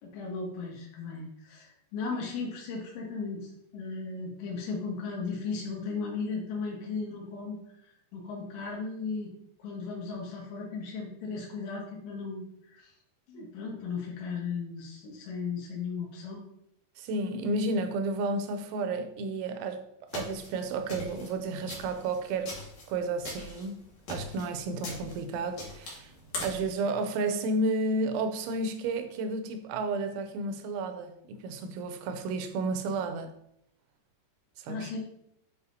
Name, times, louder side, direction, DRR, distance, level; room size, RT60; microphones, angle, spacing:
voice 1, 0.0-7.6 8.1-9.3 9.6-12.4 12.7-12.8 13.3-16.4 34.7-35.0, left 4 dB, 90° left, 3.8 m, -36 dB
voice 2, 17.0-19.8 20.1-22.5 22.9-23.8 24.1-26.1 26.4-33.3 34.6-34.9, right 2 dB, 85° right, 3.1 m, -32 dB
sound 1, 20.1-26.7, left 2 dB, 50° left, 2.3 m, -42 dB
8.0 x 5.6 x 2.8 m
omnidirectional pair, 5.3 m